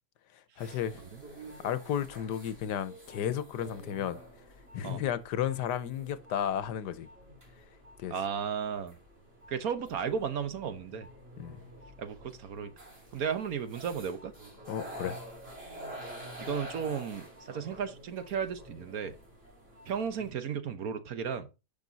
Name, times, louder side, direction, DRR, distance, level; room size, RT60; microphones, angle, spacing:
voice 1, 0.6-1.0 1.6-4.2 4.7-7.1 8.0-8.1 11.4-11.6 14.7-15.2, left 10 dB, 90° left, 1.4 m, -33 dB
sound 1, 0.6-20.3, equal, 35° right, 3.3 m, -49 dB
voice 2, 8.1-8.9 9.5-11.1 12.0-12.7 13.1-14.3 16.4-19.2 19.9-21.5, right 7 dB, 65° right, 1.4 m, -34 dB
10.5 x 6.0 x 4.0 m
omnidirectional pair, 1.7 m